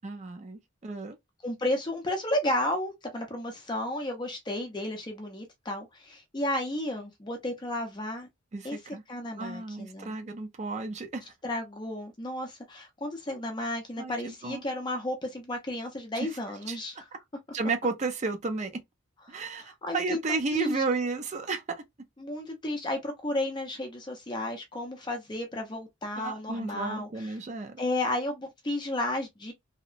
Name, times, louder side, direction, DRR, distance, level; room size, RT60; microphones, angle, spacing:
voice 1, 0.0-1.2 8.5-9.0 9.4-11.3 14.0-14.6 16.1-16.3 16.7-16.8 17.5-18.7 19.3-21.6 26.2-27.8, right 3 dB, 35° right, 0.4 m, -32 dB
voice 2, 1.4-8.3 8.6-8.8 9.1-10.2 11.4-17.1 19.3-20.8 22.2-27.4 27.8-29.5, left 1 dB, 20° left, 0.5 m, -33 dB
2.7 x 2.0 x 2.4 m
head